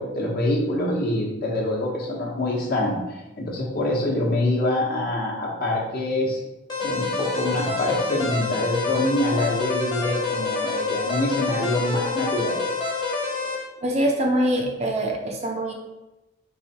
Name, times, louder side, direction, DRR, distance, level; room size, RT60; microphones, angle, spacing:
voice 1, 0.0-6.4 6.8-12.6, left 1 dB, 50° left, -3 dB, 1.1 m, -25 dB
sound 1, 6.7-13.6, left 3 dB, 20° left, 1.0 m, -27 dB
voice 2, 13.8-15.7, right 1 dB, 35° right, 1 dB, 0.6 m, -23 dB
4.7 x 2.6 x 4.1 m, 1.0 s
head